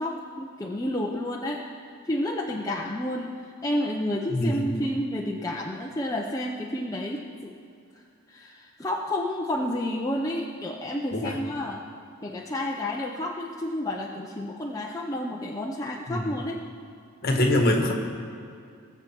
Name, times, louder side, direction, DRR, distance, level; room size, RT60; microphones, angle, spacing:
voice 1, 0.0-1.6 2.0-7.5 8.3-11.8 12.2-16.6 17.4-17.5, left 1 dB, 15° left, -1 dB, 0.5 m, -30 dB
voice 2, 4.3-4.7 11.1-11.4 16.1-16.3 17.2-17.9, left 1 dB, 45° left, 2 dB, 1.5 m, -24 dB
19.5 x 7.2 x 4.5 m, 2.4 s
head